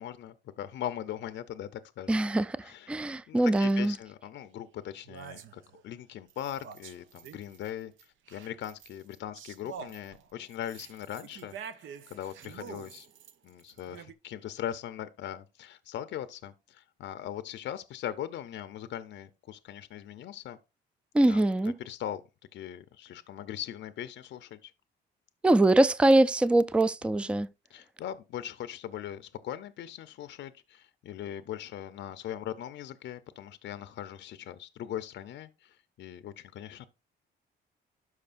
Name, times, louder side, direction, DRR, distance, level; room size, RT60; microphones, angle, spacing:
voice 1, 0.0-2.2 2.6-3.0 3.3-13.1 13.4-20.6 21.3-22.2 22.5-24.7 27.2-27.3 27.7-36.9, left 11 dB, 70° left, 0.6 m, -40 dB
voice 2, 2.1-2.5 2.9-3.9 21.1-21.7 25.4-27.5, right 1 dB, 5° right, 0.3 m, -23 dB
sound 1, 4.4-4.5 5.0-5.8 6.3-7.7 8.0-14.1, right 8 dB, 75° right, 0.7 m, -47 dB
12.5 x 4.9 x 2.5 m
cardioid pair, 90°, 20 cm